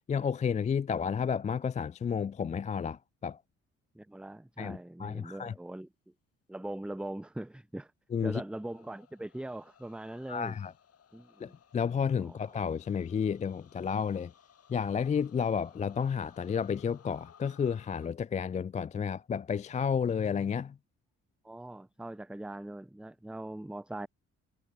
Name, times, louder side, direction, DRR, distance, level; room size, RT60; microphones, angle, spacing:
voice 1, 0.1-3.4 4.6-5.5 8.1-8.4 10.3-10.7 11.4-14.3 14.7-20.8, left 7 dB, 25° left, 0.3 m, -31 dB
voice 2, 3.9-5.9 6.5-7.9 8.2-10.6 11.1-11.5 12.2-12.4 21.4-24.1, right 1 dB, 5° right, 0.7 m, -41 dB
sound 1, 8.5-18.1, left 8 dB, 50° left, 3.6 m, -61 dB
cardioid pair, 90°, 30 cm